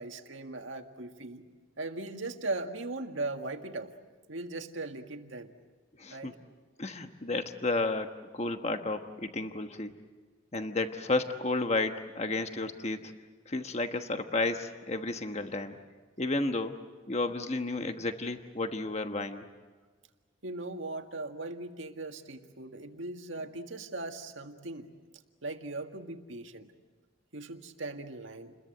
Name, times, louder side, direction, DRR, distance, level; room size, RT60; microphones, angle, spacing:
voice 1, 0.0-1.4 1.8-3.9 4.3-5.5 6.1-6.4 20.4-24.9 25.4-26.7 27.3-28.6, right 2 dB, 75° right, 5 dB, 1.9 m, -39 dB
voice 2, 6.0-6.3 6.8-9.9 10.5-13.1 13.5-15.8 16.2-16.8 17.1-19.5, left 2 dB, 35° left, 6 dB, 1.2 m, -32 dB
29.5 x 21.5 x 7.8 m, 1.4 s
head